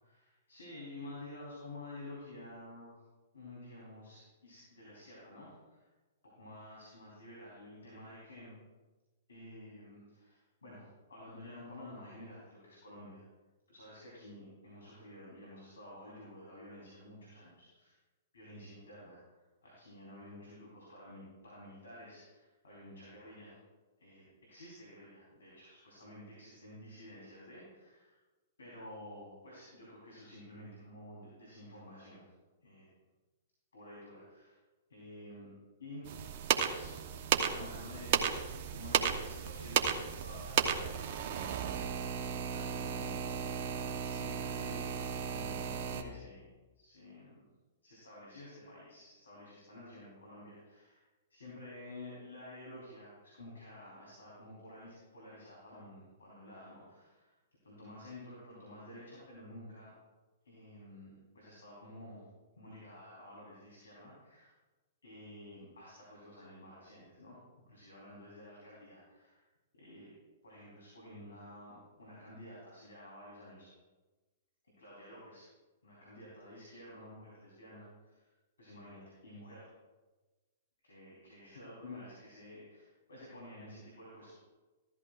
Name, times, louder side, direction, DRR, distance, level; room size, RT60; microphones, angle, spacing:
voice 1, 0.0-3.0 3.3-5.9 6.2-8.6 9.3-13.2 13.7-18.0 18.3-23.6 24.0-28.2 28.6-32.3 32.6-32.9 33.7-34.6 34.9-35.5 35.8-36.1 36.6-36.9 37.4-42.1 42.4-43.3 44.0-47.5 47.8-51.0 51.3-57.3 57.6-59.9 60.4-62.2 62.6-64.5 65.0-67.4 67.7-69.4 69.7-70.1 70.4-73.7 74.8-75.4 75.8-78.3 78.6-79.7 80.8-84.4, left 1 dB, 90° left, -5 dB, 4.0 m, -51 dB
sound 1, 36.1-46.0, right 8 dB, 55° right, 1.1 m, -34 dB
15.0 x 13.5 x 2.6 m, 1.2 s
hypercardioid pair, 120°, 0 cm